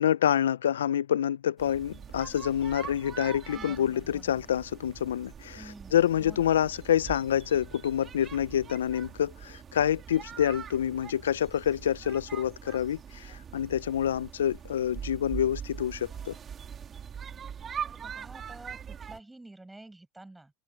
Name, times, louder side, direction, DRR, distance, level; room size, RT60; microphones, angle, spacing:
voice 1, 0.0-5.6 5.9-16.3, left 10 dB, 80° left, 0.7 m, -27 dB
sound 1, 1.6-19.2, right 7 dB, 30° right, 4.2 m, -43 dB
voice 2, 3.5-4.4 5.6-6.6 17.8-20.5, right 2 dB, 10° right, 6.9 m, -49 dB
open air
hypercardioid pair, 95°, 0 cm